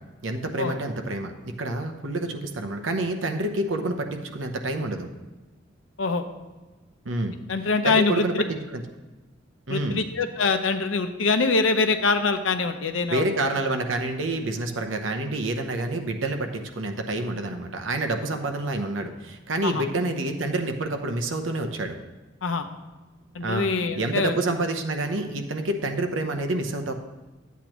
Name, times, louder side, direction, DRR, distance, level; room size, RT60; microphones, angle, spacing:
voice 1, 0.2-5.1 7.0-7.4 7.8-8.8 9.7-10.0 13.1-22.0 23.4-23.7 24.0-26.9, right 2 dB, 90° right, 6 dB, 0.9 m, -28 dB
voice 2, 7.5-8.4 9.7-13.3 19.6-19.8 22.4-22.6 23.3-24.3, left 4 dB, 90° left, 8 dB, 0.7 m, -24 dB
12.0 x 8.2 x 3.0 m, 1.2 s
head